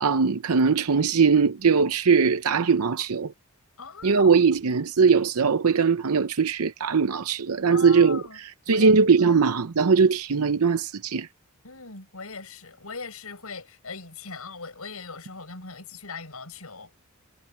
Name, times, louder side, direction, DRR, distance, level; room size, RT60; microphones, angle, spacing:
voice 1, 0.0-3.3 4.0-8.2 8.7-11.3, right 5 dB, 85° right, 0.7 m, -20 dB
voice 2, 3.8-4.3 7.6-8.4 8.7-9.4 11.6-16.9, left 4 dB, 80° left, 6.0 m, -40 dB
head